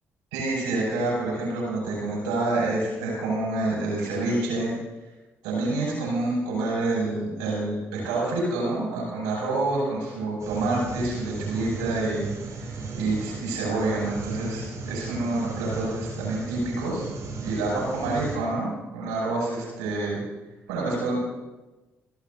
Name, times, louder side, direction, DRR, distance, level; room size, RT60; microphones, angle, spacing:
voice 1, 0.3-4.7 5.4-17.0 17.4-20.2 20.7-21.2, right 2 dB, 80° right, -4 dB, 6.2 m, -27 dB
sound 1, 10.4-18.4, right 3 dB, 50° right, 4.6 m, -36 dB
27.5 x 11.5 x 2.8 m, 1.1 s
hypercardioid pair, 45°, 7 cm